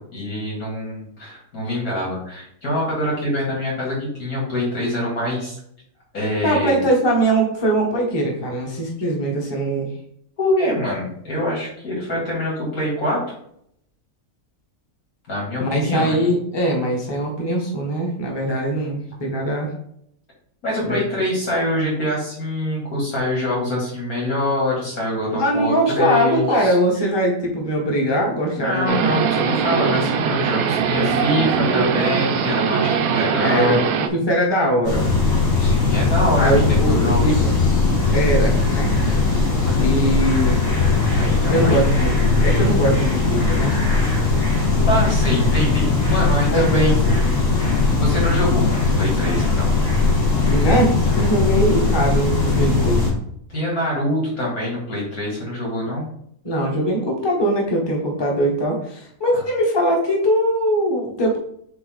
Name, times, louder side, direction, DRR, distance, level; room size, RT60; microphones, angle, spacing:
voice 1, 0.1-5.6 6.1-6.8 10.4-13.2 15.3-16.2 20.6-26.8 28.6-33.8 35.5-37.2 39.6-39.9 41.2-41.8 44.9-47.0 47.4-47.5 47.9-49.7 53.5-56.1, left 1 dB, 80° left, -4 dB, 3.1 m, -24 dB
voice 2, 6.4-9.9 15.6-19.7 20.8-21.0 25.3-29.0 29.3-29.7 30.9-31.3 31.6-31.9 33.4-35.0 36.4-37.4 38.1-38.9 39.8-40.6 41.5-42.1 42.4-43.7 46.5-47.2 50.4-53.1 56.4-61.4, right 1 dB, 20° left, -1 dB, 1.4 m, -21 dB
sound 1, 28.9-34.1, right 7 dB, 80° right, 1.1 m, -21 dB
sound 2, 34.8-53.1, left 3 dB, 60° left, 2.4 m, -19 dB
7.9 x 3.2 x 3.9 m, 0.68 s
omnidirectional pair, 1.5 m